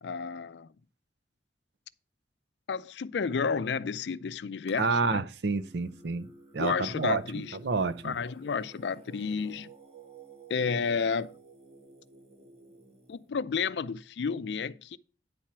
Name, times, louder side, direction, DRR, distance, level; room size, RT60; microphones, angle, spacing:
voice 1, 0.0-0.7 2.7-5.2 6.6-7.6 8.0-9.7 10.5-11.3 13.1-15.0, left 5 dB, 70° left, 0.4 m, -31 dB
voice 2, 4.8-6.3 6.5-8.2, right 4 dB, 65° right, 0.6 m, -29 dB
Singing, 5.4-13.3, right 4 dB, 35° right, 1.2 m, -54 dB
9.7 x 4.4 x 5.9 m
head